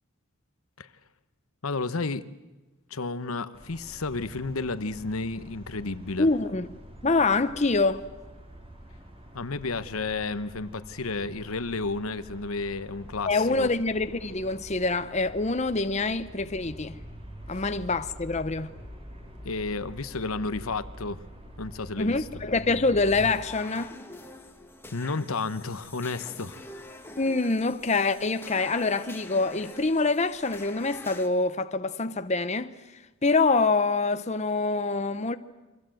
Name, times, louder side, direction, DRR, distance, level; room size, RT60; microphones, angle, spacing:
voice 1, 1.6-2.3 2.9-6.3 9.3-13.7 17.5-17.6 19.4-21.3 21.6-22.3 24.9-26.8, left 3 dB, 85° left, 1.1 m, -32 dB
sound 1, 3.5-23.3, equal, 25° right, 3.9 m, -45 dB
voice 2, 6.2-6.7 7.0-8.0 13.3-17.0 17.5-18.7 22.0-23.9 27.2-32.8 33.2-35.4, left 3 dB, 30° left, 0.8 m, -25 dB
sound 2, 23.1-31.3, left 2 dB, 10° left, 1.7 m, -45 dB
29.0 x 23.5 x 7.8 m
head